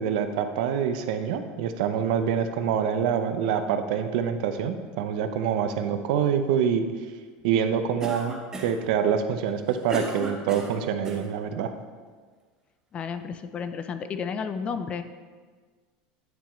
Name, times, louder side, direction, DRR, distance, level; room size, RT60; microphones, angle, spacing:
voice 1, 0.0-6.9 7.4-11.7, right 8 dB, 70° right, 8 dB, 0.5 m, -26 dB
Cough, 8.0-8.9 9.5-11.3, right 2 dB, 15° right, 0.8 m, -35 dB
voice 2, 12.9-15.0, left 6 dB, 25° left, 10 dB, 0.3 m, -32 dB
9.3 x 4.4 x 3.1 m, 1.5 s
supercardioid pair, 145°, 4 cm